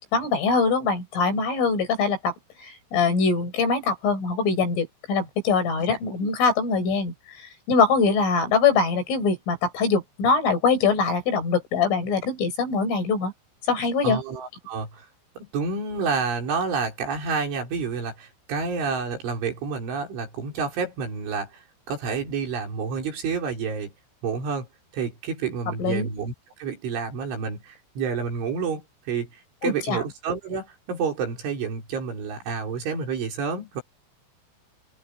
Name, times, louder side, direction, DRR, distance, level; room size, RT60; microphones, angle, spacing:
voice 1, 0.1-2.3 2.6-13.3 13.7-14.2 25.8-26.1 29.6-30.0, left 4 dB, 90° left, 9.0 m, -23 dB
voice 2, 14.0-15.1 15.4-23.9 24.2-24.7 24.9-26.3 26.6-29.3 29.6-33.8, right 5 dB, 75° right, 7.6 m, -29 dB
open air
omnidirectional pair, 5.6 m